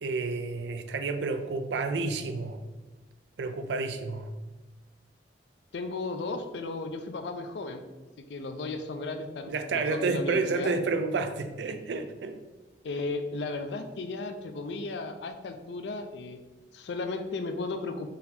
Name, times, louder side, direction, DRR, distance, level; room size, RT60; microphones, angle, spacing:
voice 1, 0.0-2.6 3.4-4.3 9.5-12.4, right 4 dB, 75° right, 9 dB, 0.4 m, -30 dB
voice 2, 5.7-7.8 8.2-10.7 12.8-16.4 16.7-18.1, left 3 dB, 70° left, 7 dB, 0.4 m, -35 dB
4.0 x 2.8 x 4.1 m, 1.2 s
head